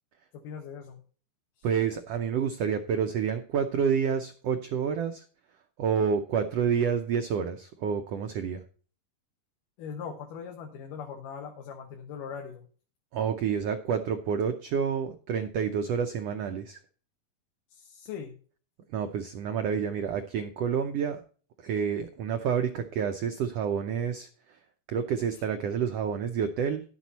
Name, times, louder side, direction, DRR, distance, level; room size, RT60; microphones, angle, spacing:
voice 1, 0.3-1.0 1.6-1.7 9.8-12.7 17.7-18.4, left 7 dB, 80° left, 3 dB, 2.8 m, -40 dB
voice 2, 1.6-5.2 5.8-8.6 13.1-16.8 18.9-21.2 21.6-24.6 24.9-26.8, right 7 dB, 85° right, 7 dB, 1.4 m, -29 dB
11.5 x 7.7 x 4.1 m, 0.40 s
omnidirectional pair, 3.8 m